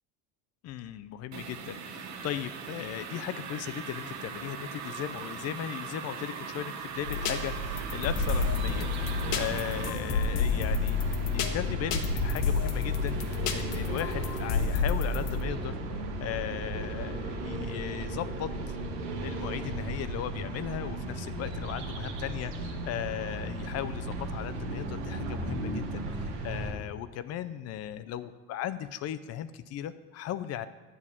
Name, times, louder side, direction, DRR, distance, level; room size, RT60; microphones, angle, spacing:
voice 1, 0.6-11.0 11.3-18.5 19.2-30.7, left 11 dB, 40° left, 14 dB, 0.5 m, -37 dB
sound 1, 1.3-9.9, right 6 dB, 45° right, 1.1 m, -40 dB
sound 2, 6.8-26.7, right 1 dB, 90° right, 1.8 m, -35 dB
sound 3, 7.1-15.4, left 5 dB, 70° left, 1.1 m, -30 dB
10.0 x 4.0 x 7.3 m, 1.3 s
supercardioid pair, 120°, 40 cm